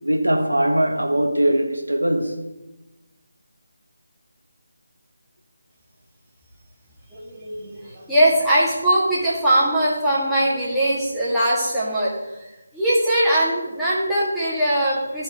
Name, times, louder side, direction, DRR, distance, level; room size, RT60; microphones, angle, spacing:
voice 1, 0.0-2.4, right 1 dB, 85° right, 1.2 m, -21 dB
voice 2, 7.1-12.1 12.4-15.2, right 1 dB, ahead, 1.9 m, -21 dB
14.5 x 4.9 x 3.6 m
figure-of-eight pair, 155°, 0 cm